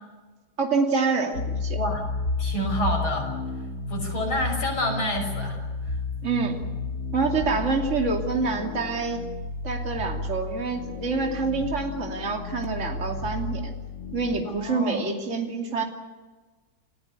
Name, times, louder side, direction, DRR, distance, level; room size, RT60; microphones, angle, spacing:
voice 1, 0.6-1.8 6.2-6.6 7.1-9.3 9.6-13.7 14.1-15.8, right 4 dB, 35° right, 3 dB, 3.0 m, -27 dB
sound 1, 1.3-14.4, left 3 dB, 65° left, 4.2 m, -32 dB
voice 2, 2.4-3.3 3.9-5.6 5.9-6.0 14.5-15.1, equal, 85° left, 3 dB, 6.9 m, -28 dB
29.5 x 16.0 x 9.6 m, 1.3 s
omnidirectional pair, 2.2 m